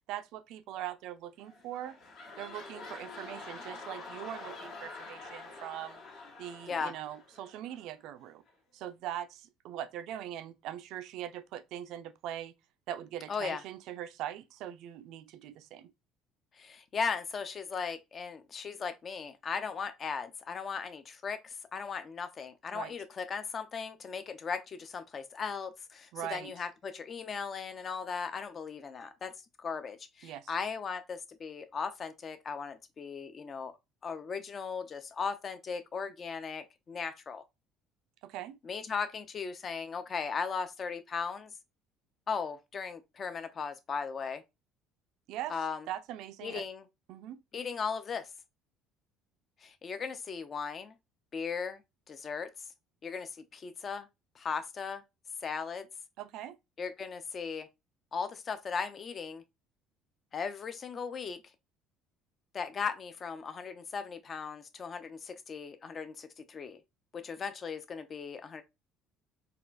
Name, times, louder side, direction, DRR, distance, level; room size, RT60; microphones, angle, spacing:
voice 1, 0.1-2.0 2.4-6.0 6.4-8.4 8.7-12.5 12.9-15.9 22.7-22.9 26.1-26.5 30.2-30.5 38.2-38.6 45.3-45.6 45.9-46.6 47.1-47.4 56.2-56.6, right 11 dB, 70° right, 0.4 m, -41 dB
sound 1, 1.4-7.9 8.5-8.6, left 3 dB, 60° left, 1.6 m, -47 dB
voice 2, 13.3-13.6 16.5-29.3 29.6-33.7 34.0-37.4 38.6-41.5 42.3-44.4 45.5-45.9 46.4-46.8 47.5-48.3 49.6-50.9 51.3-51.8 52.1-52.5 53.0-54.1 54.4-55.0 55.4-55.9 56.8-57.7 58.1-59.4 60.3-61.4 62.5-66.8 67.1-68.6, left 5 dB, 35° left, 0.5 m, -37 dB
4.0 x 2.4 x 2.5 m
cardioid pair, 105°, 0 cm